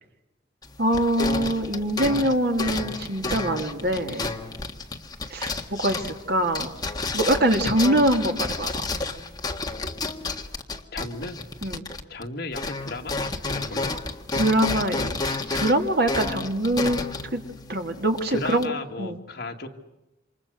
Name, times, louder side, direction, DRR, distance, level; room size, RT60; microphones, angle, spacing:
sound 1, 0.6-12.3 12.5-18.7, left 3 dB, 20° left, 1.7 m, -31 dB
voice 1, 0.8-4.2 5.3-6.7 7.1-8.9 11.6-11.8 14.3-17.0 17.3-17.4 17.7-18.7 19.0-19.2, right 1 dB, 55° right, 5 dB, 2.7 m, -24 dB
voice 2, 10.9-11.4 12.1-13.2 13.5-13.9 18.3-19.7, left 2 dB, 55° left, 3 dB, 2.3 m, -34 dB
28.5 x 26.0 x 6.5 m, 0.97 s
head